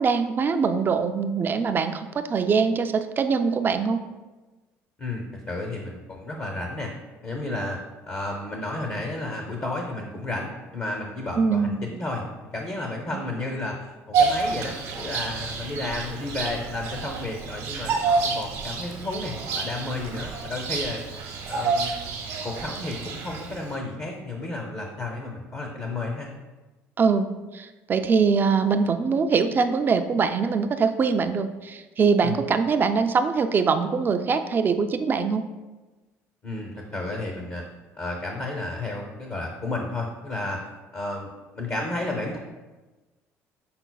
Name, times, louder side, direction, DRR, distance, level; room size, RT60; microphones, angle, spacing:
voice 1, 0.0-4.0 11.4-11.8 27.0-35.5, right 5 dB, 35° right, 8 dB, 0.4 m, -23 dB
voice 2, 5.0-6.9 7.2-7.8 8.1-12.3 12.5-21.0 21.5-22.1 22.4-26.3 32.2-32.4 36.4-37.6 38.0-40.6 40.9-42.4, left 2 dB, 40° left, 0 dB, 0.7 m, -32 dB
Bird vocalization bird call bird song, 14.1-23.7, right 4 dB, 80° right, 0.8 m, -28 dB
5.8 x 3.8 x 2.3 m, 1.2 s
supercardioid pair, 95°, 6 cm